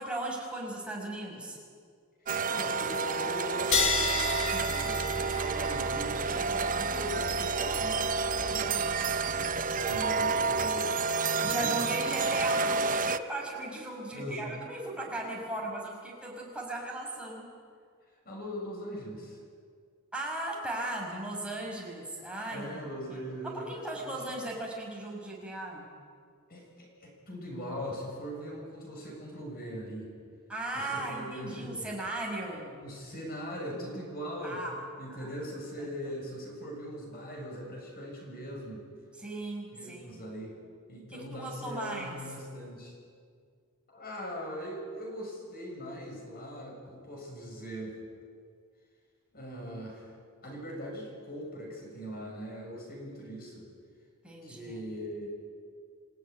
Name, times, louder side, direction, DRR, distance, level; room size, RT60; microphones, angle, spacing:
voice 1, 0.0-1.6 4.5-5.0 11.4-17.5 20.1-22.8 23.1-23.2 23.4-25.9 30.5-32.8 34.4-34.8 35.1-35.3 35.8-35.9 39.2-40.2 41.1-42.2 54.2-54.8, right 2 dB, 5° right, -2 dB, 6.0 m, -37 dB
sound 1, 2.3-13.2, right 4 dB, 35° right, 0.7 m, -30 dB
voice 2, 2.5-8.9 9.4-11.7 14.1-14.5 18.2-19.4 22.5-24.2 26.5-30.1 30.7-31.9 32.8-34.6 35.0-38.8 39.7-40.5 40.9-43.0 43.9-48.0 49.3-50.1 50.4-53.7 54.4-55.3, equal, 45° left, 0 dB, 7.2 m, -40 dB
sound 2, 3.7-10.7, left 4 dB, 60° left, 3.8 m, -34 dB
28.0 x 16.5 x 9.7 m, 2.1 s
head